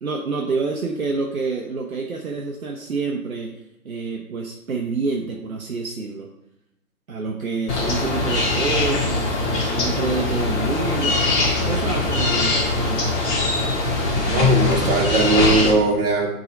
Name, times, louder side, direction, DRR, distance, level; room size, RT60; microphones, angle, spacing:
voice 1, 0.0-6.3 7.1-11.2 11.7-13.2, right 4 dB, 65° right, 0 dB, 1.2 m, -28 dB
sound 1, 7.7-15.7, left 2 dB, 20° left, 1.6 m, -22 dB
voice 2, 14.3-16.3, right 1 dB, 35° right, -3 dB, 2.5 m, -18 dB
9.4 x 4.0 x 5.1 m, 0.89 s
figure-of-eight pair, 140°, 45 cm